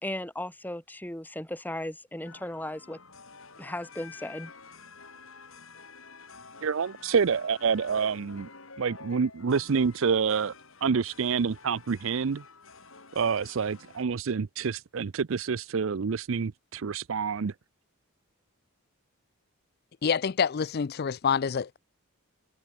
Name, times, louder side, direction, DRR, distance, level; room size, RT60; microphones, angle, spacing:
voice 1, 0.0-3.0 3.6-4.5, left 1 dB, 10° left, 2.4 m, -36 dB
sound 1, 2.2-14.1, left 4 dB, 60° left, 6.9 m, -50 dB
voice 2, 6.6-8.5 8.8-10.5 10.8-12.4 13.1-17.5, right 6 dB, 60° right, 0.5 m, -27 dB
voice 3, 20.0-21.8, left 6 dB, 45° left, 0.4 m, -27 dB
head